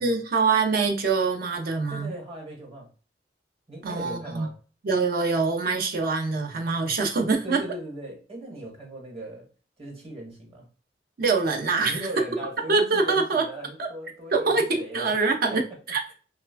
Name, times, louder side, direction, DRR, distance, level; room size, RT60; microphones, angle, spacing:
voice 1, 0.0-2.1 3.8-4.5 4.8-7.6 11.2-12.0 12.7-13.4 13.8-13.9 14.3-15.6 15.9-16.0, right 4 dB, 55° right, 0.5 m, -24 dB
voice 2, 1.9-2.9 3.7-4.6 7.4-9.5 9.8-10.7 11.8-15.1 15.4-15.6, right 1 dB, 35° right, 1.1 m, -38 dB
3.2 x 2.2 x 2.2 m
head